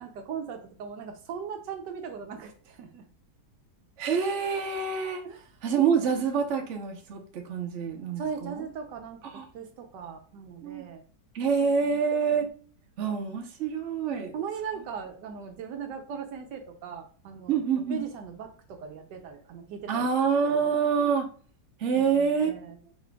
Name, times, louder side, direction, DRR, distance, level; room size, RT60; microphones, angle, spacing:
voice 1, 0.0-3.0 5.2-5.4 8.2-9.2 9.5-11.0 11.6-12.0 14.3-17.6 17.9-20.1 20.6-20.7 21.9-22.8, right 7 dB, 75° right, 5 dB, 1.2 m, -39 dB
voice 2, 4.0-5.2 5.6-8.6 9.3-9.4 10.6-10.8 11.3-12.5 13.0-14.3 17.5-18.0 19.9-21.3 21.8-22.6, right 6 dB, 50° right, 2 dB, 1.0 m, -26 dB
4.4 x 4.2 x 2.3 m, 0.43 s
omnidirectional pair, 1.9 m